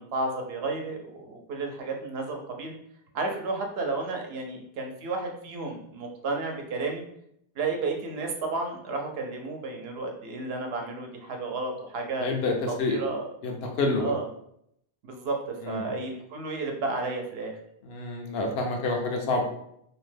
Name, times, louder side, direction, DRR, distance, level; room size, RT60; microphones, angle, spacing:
voice 1, 0.0-2.7 3.1-7.0 7.6-12.3 12.7-13.2 14.0-14.3 15.0-17.6, right 3 dB, 80° right, 3 dB, 0.8 m, -32 dB
voice 2, 12.2-13.0 13.4-14.1 15.6-15.9 17.9-19.4, left 3 dB, 80° left, 2 dB, 0.8 m, -28 dB
2.7 x 2.1 x 3.2 m, 0.72 s
omnidirectional pair, 1.0 m